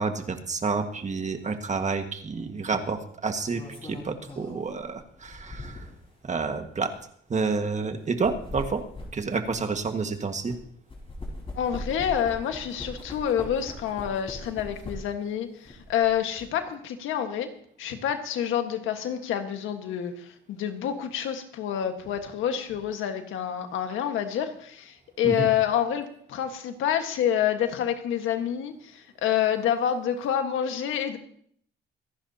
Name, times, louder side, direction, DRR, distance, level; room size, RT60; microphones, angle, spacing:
voice 1, 0.0-5.7 6.2-6.9 7.3-8.8 9.1-10.5 25.2-25.5, right 4 dB, 35° right, 6 dB, 1.7 m, -29 dB
sound 1, 1.7-1.9 3.2-6.1 6.8-6.9 8.0-10.6 10.9-15.2 15.6-16.5, left 1 dB, 30° left, 5.0 m, -40 dB
voice 2, 11.5-17.5 17.8-31.2, left 9 dB, 85° left, 6 dB, 1.6 m, -28 dB
25.5 x 10.5 x 2.9 m, 0.63 s
cardioid pair, 90°, 20 cm